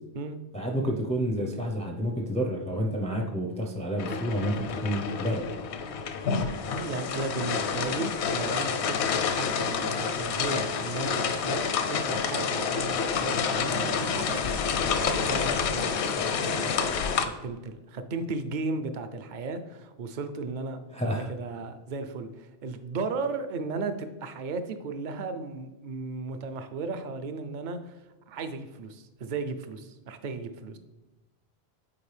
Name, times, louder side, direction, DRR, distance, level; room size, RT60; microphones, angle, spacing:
voice 1, 0.5-5.5 20.9-21.3, equal, 10° left, 2 dB, 0.4 m, -29 dB
sound 1, 4.0-17.3, left 6 dB, 80° left, 0.9 m, -28 dB
voice 2, 6.8-14.7 15.0-16.8 17.1-20.8 21.3-28.0 28.3-30.8, right 3 dB, 55° right, 9 dB, 0.6 m, -35 dB
8.6 x 4.3 x 3.3 m, 1.0 s
omnidirectional pair, 1.1 m